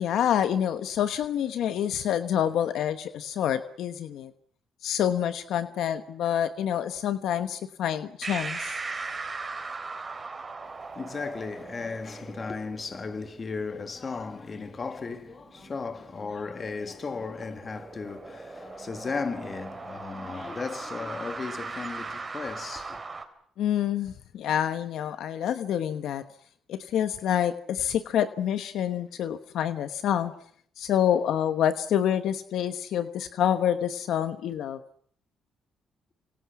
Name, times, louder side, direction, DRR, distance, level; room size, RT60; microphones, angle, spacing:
voice 1, 0.0-4.3 4.8-8.8 23.6-26.2 26.7-30.3 30.8-34.8, left 10 dB, 80° left, 1.1 m, -27 dB
sound 1, 8.2-23.2, right 4 dB, 30° right, 3.7 m, -40 dB
voice 2, 10.8-23.0, left 4 dB, 35° left, 2.2 m, -35 dB
29.5 x 26.0 x 6.1 m
cardioid pair, 90°, 0 cm